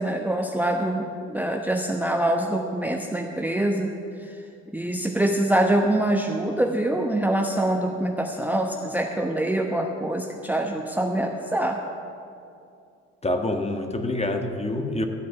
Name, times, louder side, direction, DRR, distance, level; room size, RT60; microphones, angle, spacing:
voice 1, 0.0-3.9 4.7-11.8, right 1 dB, 5° right, 2 dB, 1.1 m, -24 dB
voice 2, 13.2-15.1, left 1 dB, 15° left, 5 dB, 1.5 m, -26 dB
13.0 x 9.3 x 6.9 m, 2.5 s
figure-of-eight pair, 55°, 36 cm